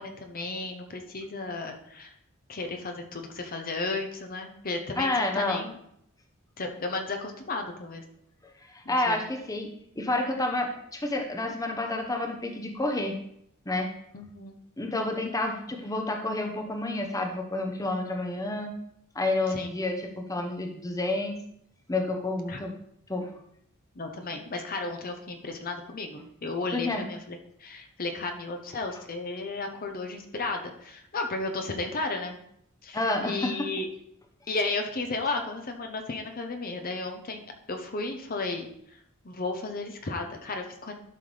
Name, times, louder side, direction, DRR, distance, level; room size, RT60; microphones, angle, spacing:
voice 1, 0.0-2.1 2.5-5.8 6.6-8.0 8.8-9.2 14.1-14.5 19.5-19.7 22.5-22.6 23.9-32.4 32.8-33.9 34.5-37.4 37.7-38.7 39.2-40.9, left 3 dB, 45° left, 4 dB, 0.9 m, -34 dB
voice 2, 5.0-5.6 8.7-9.7 10.0-13.2 13.7-13.9 14.8-18.7 19.1-21.4 21.9-22.7 23.1-23.3 26.7-27.0 32.9-33.5, left 2 dB, 15° left, 3 dB, 0.9 m, -29 dB
11.5 x 5.7 x 3.4 m, 0.72 s
head